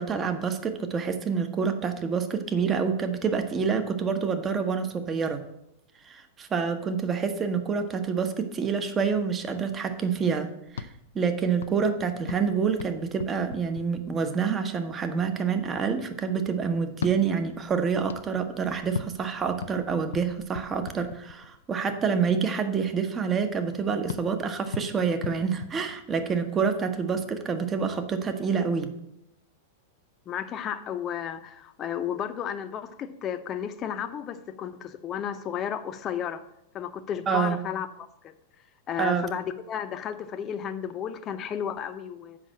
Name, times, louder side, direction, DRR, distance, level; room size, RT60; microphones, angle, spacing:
voice 1, 0.0-5.4 6.0-10.9 11.1-28.9 37.3-37.6 39.0-39.2, right 6 dB, 25° right, 8 dB, 1.1 m, -27 dB
sound 1, 10.7-14.5 16.9-21.7 24.1-26.5, left 6 dB, 70° left, 0.5 m, -40 dB
voice 2, 30.3-36.4 36.7-37.9 38.2-38.3 38.9-42.4, left 9 dB, 30° left, 9 dB, 0.8 m, -33 dB
7.6 x 5.5 x 7.5 m, 0.81 s
hypercardioid pair, 100°, 0 cm